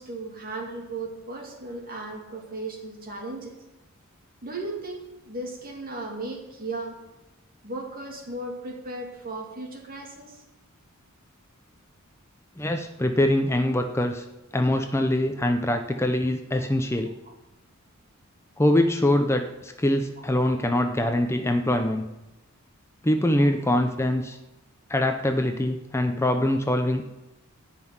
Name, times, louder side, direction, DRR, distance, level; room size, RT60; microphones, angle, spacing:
voice 1, 0.0-3.6 4.4-7.0 7.6-10.4 16.6-16.7 17.2-17.3 20.2-20.3 25.9-26.0, right 2 dB, 45° right, 1 dB, 2.7 m, -36 dB
voice 2, 12.6-14.2 14.5-17.1 18.6-22.0 23.0-24.4 24.9-27.0, left 1 dB, 10° left, 5 dB, 0.6 m, -23 dB
14.0 x 5.8 x 9.6 m, 0.98 s
head